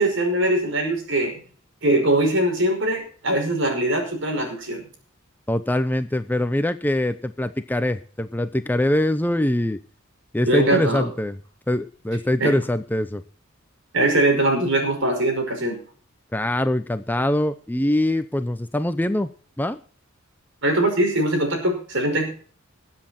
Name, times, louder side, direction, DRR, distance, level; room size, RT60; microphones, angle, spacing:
voice 1, 0.0-1.4 1.8-4.8 10.5-11.1 12.4-12.6 13.9-15.8 20.6-22.3, right 1 dB, 65° right, 4 dB, 5.3 m, -21 dB
voice 2, 5.5-9.8 10.3-11.4 11.7-13.2 16.3-19.3 19.6-19.8, left 1 dB, 10° left, 10 dB, 0.6 m, -23 dB
21.0 x 7.8 x 4.3 m, 0.43 s
head